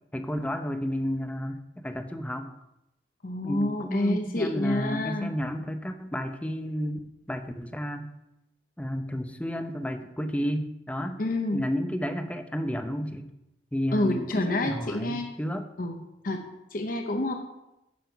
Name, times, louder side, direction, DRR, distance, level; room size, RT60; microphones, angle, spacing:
voice 1, 0.1-2.5 3.4-7.0 7.3-8.1 8.8-11.2 11.5-13.3 13.7-15.7, equal, 10° left, 8 dB, 0.6 m, -31 dB
voice 2, 3.2-5.3 11.2-11.6 13.9-15.3 15.8-17.3, left 1 dB, 50° left, 4 dB, 0.8 m, -28 dB
9.4 x 6.3 x 5.7 m, 0.90 s
head